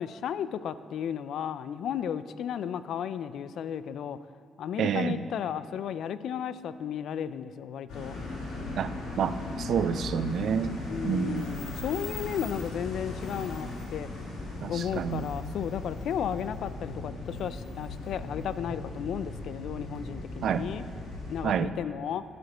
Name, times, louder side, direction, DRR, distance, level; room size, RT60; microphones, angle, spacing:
voice 1, 0.0-4.2 4.6-8.2 10.9-14.1 14.7-20.8 21.3-22.2, left 8 dB, 70° left, 14 dB, 0.3 m, -34 dB
voice 2, 4.8-5.2 8.8-10.8 11.0-11.5 14.6-15.3 20.4-20.6 21.4-21.7, right 7 dB, 65° right, 13 dB, 0.4 m, -29 dB
sound 1, 7.9-21.4, left 2 dB, 90° left, 2.5 m, -38 dB
9.2 x 5.1 x 6.1 m, 2.3 s
cardioid pair, 90°, 0 cm